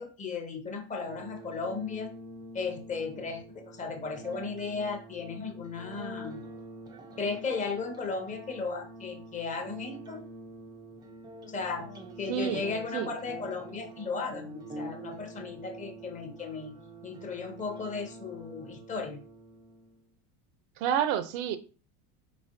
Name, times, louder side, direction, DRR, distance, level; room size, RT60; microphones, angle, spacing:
voice 1, 0.0-2.1 2.5-6.4 7.2-10.2 11.5-16.7 17.0-19.2, left 4 dB, 20° left, 4 dB, 0.6 m, -35 dB
sound 1, 1.0-20.0, right 1 dB, 15° right, 0.3 m, -46 dB
voice 2, 12.3-13.1 20.8-21.6, right 9 dB, 65° right, 12 dB, 0.6 m, -29 dB
4.1 x 3.9 x 2.6 m, 0.37 s
cardioid pair, 155°, 34 cm